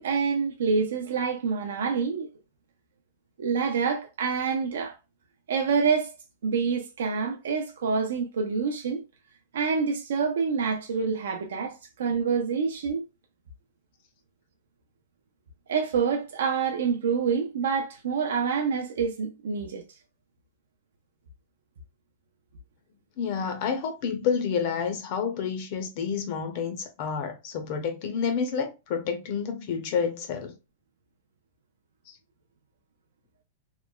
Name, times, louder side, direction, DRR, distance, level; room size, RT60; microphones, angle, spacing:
voice 1, 0.0-2.3 3.4-5.0 5.5-6.1 6.4-9.0 9.5-13.0 15.7-19.8, right 5 dB, 85° right, 0.4 m, -27 dB
voice 2, 23.2-30.5, left 6 dB, 40° left, 0.5 m, -29 dB
2.9 x 2.2 x 2.2 m
supercardioid pair, 170°, 0 cm